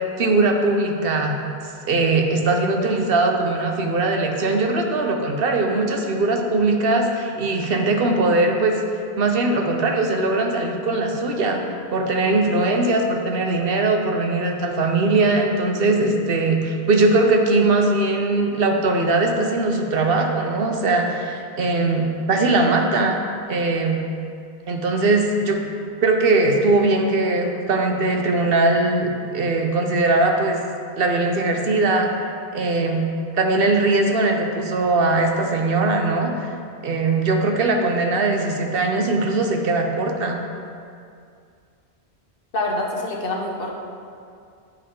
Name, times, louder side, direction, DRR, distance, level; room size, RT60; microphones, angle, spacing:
voice 1, 0.2-1.3 1.9-8.8 9.2-11.6 11.9-23.2 23.5-24.0 24.7-25.6 26.0-30.6 31.0-32.1 32.5-33.0 33.3-36.5 36.8-40.4, right 2 dB, 65° right, 3 dB, 0.9 m, -20 dB
voice 2, 42.5-43.7, left 1 dB, 60° left, -1 dB, 1.1 m, -26 dB
10.0 x 4.7 x 3.7 m, 2.3 s
omnidirectional pair, 1.1 m